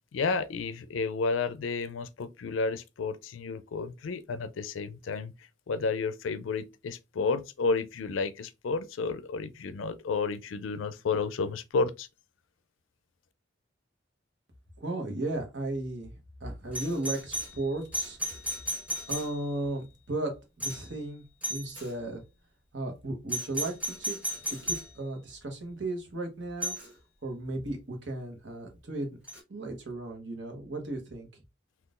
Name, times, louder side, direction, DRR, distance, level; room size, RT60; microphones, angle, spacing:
voice 1, 0.1-12.1, left 4 dB, 85° left, 0.4 m, -31 dB
voice 2, 14.8-16.1 16.4-18.2 19.1-21.2 21.5-22.2 22.7-24.2 24.5-26.7 27.2-29.1 29.5-31.3, right 2 dB, 65° right, 1.0 m, -35 dB
Doorbell, 16.7-19.7 20.6-21.0 21.4-21.9 23.3-24.9 26.6-26.9 29.3-29.4, equal, 5° right, 1.3 m, -35 dB
3.7 x 2.4 x 2.4 m
head